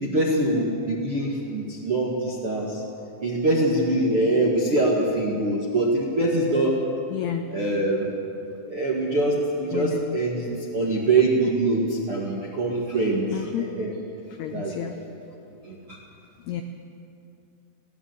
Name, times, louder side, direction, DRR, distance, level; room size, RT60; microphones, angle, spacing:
voice 1, 0.0-2.8 3.2-6.8 7.5-8.0 8.7-13.9 14.5-14.7 15.7-16.0, right 2 dB, 55° right, -3 dB, 1.5 m, -24 dB
voice 2, 7.1-7.5 9.7-10.2 13.3-13.7 14.4-15.0 16.5-16.6, left 10 dB, 85° left, 6 dB, 2.3 m, -30 dB
21.0 x 17.5 x 7.9 m, 2.7 s
omnidirectional pair, 5.8 m